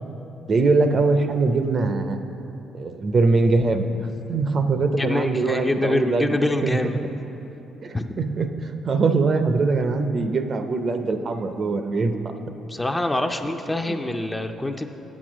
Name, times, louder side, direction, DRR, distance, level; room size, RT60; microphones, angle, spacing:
voice 1, 0.5-2.2 2.7-3.9 4.3-6.3 6.6-6.8 7.8-12.3 13.9-14.0, right 3 dB, 45° right, 8 dB, 0.5 m, -22 dB
voice 2, 5.0-7.0 7.9-8.1 12.7-14.9, left 2 dB, 15° left, 6 dB, 0.5 m, -25 dB
8.4 x 6.2 x 6.2 m, 3.0 s
cardioid pair, 90°, 0 cm